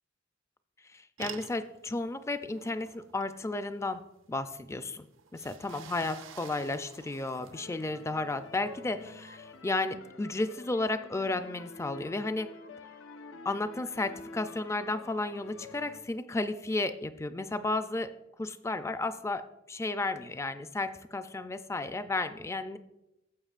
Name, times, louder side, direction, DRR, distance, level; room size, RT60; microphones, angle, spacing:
voice 1, 0.9-4.0 4.3-5.1 5.3-12.5 13.4-18.1 18.4-22.8, left 2 dB, 15° left, 11 dB, 0.4 m, -33 dB
sound 1, 1.2-9.6, right 7 dB, 75° right, 0.6 m, -50 dB
sound 2, 7.5-16.0, left 4 dB, 85° left, 0.6 m, -49 dB
14.0 x 7.2 x 2.4 m, 0.93 s
head